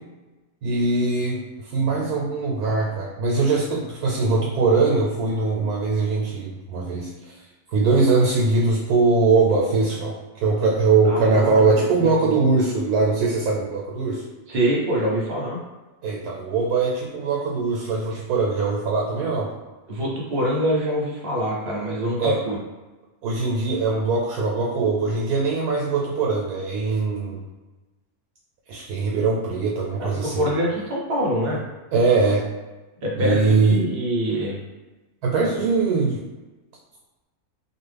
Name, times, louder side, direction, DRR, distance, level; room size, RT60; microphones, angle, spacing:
voice 1, 0.6-14.3 16.0-19.5 22.2-22.4 23.2-27.5 28.7-30.5 31.9-32.5 33.2-33.8 35.2-36.2, right 3 dB, 85° right, -2 dB, 1.1 m, -21 dB
voice 2, 11.0-12.3 14.5-15.6 19.9-22.6 30.0-31.6 33.0-34.6 35.4-35.7, equal, 50° right, -4 dB, 0.8 m, -25 dB
2.6 x 2.4 x 3.2 m, 1.2 s
omnidirectional pair, 1.6 m